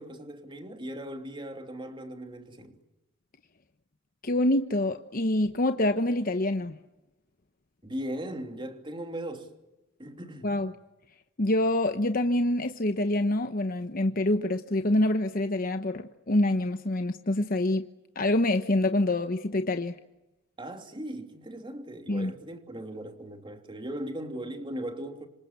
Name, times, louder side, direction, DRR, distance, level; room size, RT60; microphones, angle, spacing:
voice 1, 0.0-2.8 7.8-9.5 10.0-10.5 20.6-25.3, right 1 dB, 25° right, 3.1 m, -38 dB
voice 2, 4.2-6.8 10.4-10.7 11.4-17.9 18.1-19.9 22.1-22.3, left 1 dB, 45° left, 1.1 m, -26 dB
26.5 x 26.5 x 8.3 m
head